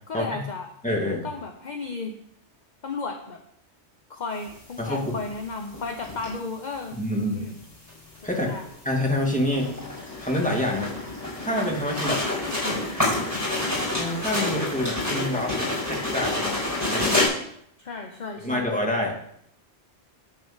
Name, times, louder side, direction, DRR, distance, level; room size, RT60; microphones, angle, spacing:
voice 1, 0.1-0.7 1.2-2.1 2.8-3.4 4.1-7.0 7.3-7.6 8.5-8.7 12.4-12.8 17.8-18.7, left 4 dB, 45° left, 4 dB, 0.9 m, -34 dB
voice 2, 0.8-1.3 4.8-5.2 6.9-7.5 8.2-8.5 8.8-9.7 10.2-10.9 11.4-12.2 13.9-16.6 16.9-17.3 18.4-19.4, left 1 dB, 5° left, -2 dB, 2.0 m, -27 dB
sound 1, 4.5-4.6 5.7-6.5 6.9-7.0 7.3-7.4 7.9-8.3 8.6-17.3, left 2 dB, 15° right, 4.5 m, -28 dB
10.5 x 4.7 x 7.3 m, 0.71 s
omnidirectional pair, 1.2 m